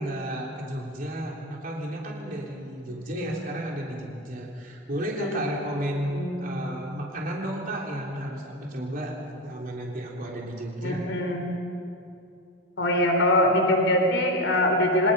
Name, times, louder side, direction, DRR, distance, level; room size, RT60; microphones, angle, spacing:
voice 1, 0.0-11.0, right 1 dB, 50° right, -2 dB, 3.4 m, -33 dB
voice 2, 5.2-5.5 6.1-6.4 10.8-11.5 12.8-15.1, left 1 dB, 90° left, 3 dB, 4.0 m, -23 dB
29.0 x 26.0 x 5.5 m, 2.6 s
head